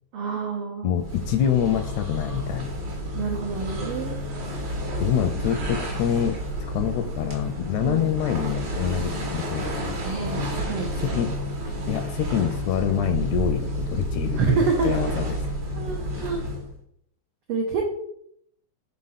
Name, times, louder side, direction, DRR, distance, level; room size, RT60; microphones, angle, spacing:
voice 1, 0.1-0.9 3.1-4.2 7.8-8.1 10.0-10.4 10.6-11.2 14.3-15.1 15.8-16.4 17.5-17.8, right 5 dB, 80° right, 0 dB, 1.2 m, -27 dB
voice 2, 0.8-2.7 5.0-9.6 11.0-11.3 11.9-15.3, left 9 dB, 80° left, 7 dB, 1.7 m, -26 dB
sound 1, 1.0-16.8, equal, 50° right, 1.4 m, -30 dB
5.2 x 4.1 x 5.6 m, 0.72 s
omnidirectional pair, 3.5 m